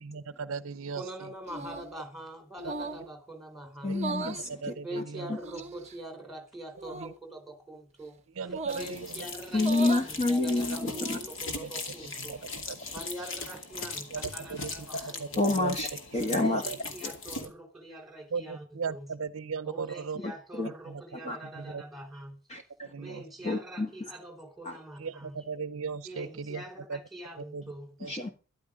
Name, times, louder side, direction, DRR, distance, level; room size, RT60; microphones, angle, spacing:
voice 1, 0.0-1.0 3.9-4.0 4.3-5.2 7.0-7.1 8.4-9.0 12.3-12.4 12.7-12.8 14.1-14.2 14.5-14.7 15.2-15.3 15.6-15.7 16.3-16.4 16.7-16.8 18.3-20.2 21.7-21.8 22.8-23.2 25.0-26.6 26.9-27.0 27.5-27.6 28.0-28.1, right 5 dB, 65° right, 0.6 m, -36 dB
voice 2, 0.9-4.0 4.8-12.4 12.9-15.4 16.2-19.1 19.6-22.4 23.0-25.5 26.0-28.0, right 1 dB, ahead, 3.9 m, -44 dB
sound 1, 1.5-2.0 2.6-3.1 3.9-4.5 5.4-5.9 6.8-7.1 8.5-8.9 9.5-10.1 10.8-11.3, right 3 dB, 30° right, 0.7 m, -38 dB
voice 3, 3.8-5.0 9.5-11.2 12.8-12.9 14.9-15.1 15.4-16.6 17.0-17.1 20.1-20.7 21.2-21.4 22.5-22.9 23.4-23.9 24.6-24.8 28.0-28.3, left 2 dB, 30° left, 1.3 m, -29 dB
sound 2, 8.7-17.5, left 3 dB, 60° left, 2.6 m, -39 dB
13.0 x 12.0 x 5.1 m
head